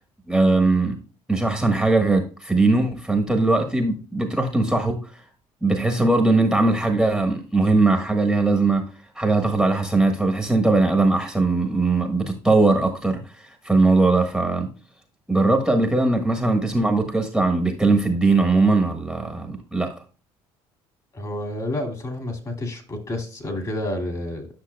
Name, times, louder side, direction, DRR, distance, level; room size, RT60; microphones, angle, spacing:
voice 1, 0.3-1.0 1.3-5.2 5.6-8.9 9.1-14.7 15.3-19.9, right 3 dB, 5° right, 1.4 m, -20 dB
voice 2, 21.1-24.5, left 1 dB, 30° left, 2.7 m, -29 dB
10.0 x 6.1 x 2.3 m
supercardioid pair, 75°, 12 cm